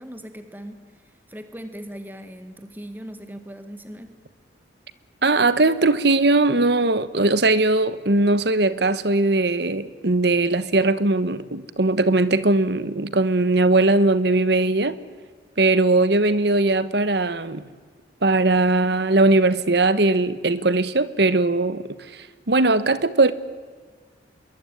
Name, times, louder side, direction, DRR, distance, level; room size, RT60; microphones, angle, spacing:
voice 1, 0.0-4.1, equal, 10° right, 1.7 m, -39 dB
voice 2, 5.2-15.0 15.6-17.7 18.2-23.3, right 2 dB, 60° right, 1.3 m, -20 dB
26.5 x 22.5 x 9.2 m
head